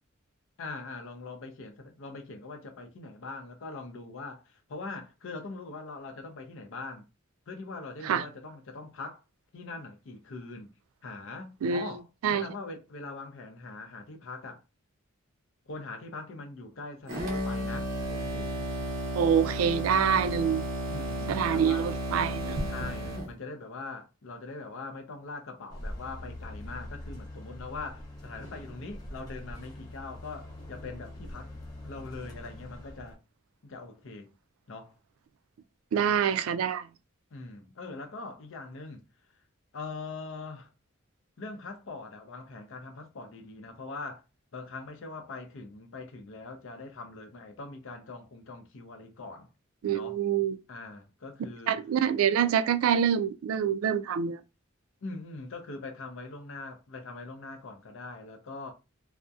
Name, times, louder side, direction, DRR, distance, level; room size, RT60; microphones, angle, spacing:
voice 1, 0.6-7.1 7.5-9.2 9.5-10.7 11.0-14.6 15.7-18.5 20.9-21.9 22.6-31.5 31.8-33.2 33.6-34.3 34.7-34.9 37.3-39.0 39.7-40.7 41.4-44.2 44.5-49.5 49.9-50.2 50.7-51.8 55.0-58.7, left 3 dB, 70° left, 0.6 m, -42 dB
sound 1, 17.1-23.3, right 1 dB, 45° right, 0.7 m, -33 dB
voice 2, 19.1-20.6 21.3-22.6 35.9-36.8 49.8-50.6 51.7-54.4, right 8 dB, 80° right, 0.3 m, -26 dB
sound 2, 25.7-33.1, left 1 dB, 20° left, 0.7 m, -43 dB
2.6 x 2.1 x 2.3 m
head